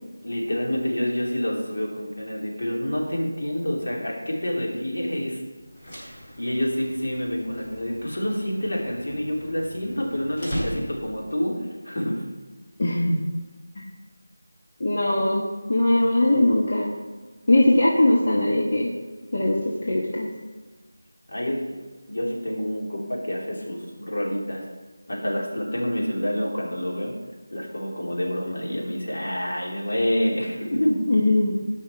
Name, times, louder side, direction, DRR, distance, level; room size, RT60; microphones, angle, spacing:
voice 1, 0.2-5.4 5.8-5.9 6.4-11.6 11.8-12.3 21.3-21.7 22.1-24.6 25.1-27.2 27.5-31.0, equal, 65° left, -2 dB, 3.1 m, -27 dB
sound 1, 5.6-11.3, equal, 20° left, 2.8 m, -39 dB
voice 2, 12.8-13.2 13.7-13.8 14.8-17.0 17.5-18.9 19.3-20.3 31.1-31.5, left 1 dB, 40° left, -3 dB, 1.3 m, -20 dB
15.0 x 5.7 x 4.5 m, 1.3 s
figure-of-eight pair, 175°, 0 cm